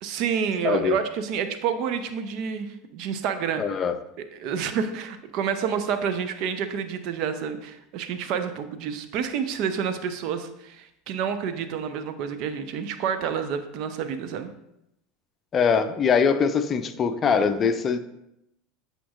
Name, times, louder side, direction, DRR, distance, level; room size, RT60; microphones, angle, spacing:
voice 1, 0.0-3.6 4.3-14.5, right 7 dB, 55° right, 9 dB, 0.6 m, -29 dB
voice 2, 0.6-0.9 3.6-3.9 15.5-18.0, left 6 dB, 35° left, 10 dB, 0.5 m, -22 dB
8.5 x 5.2 x 2.4 m, 0.83 s
hypercardioid pair, 80°, 0 cm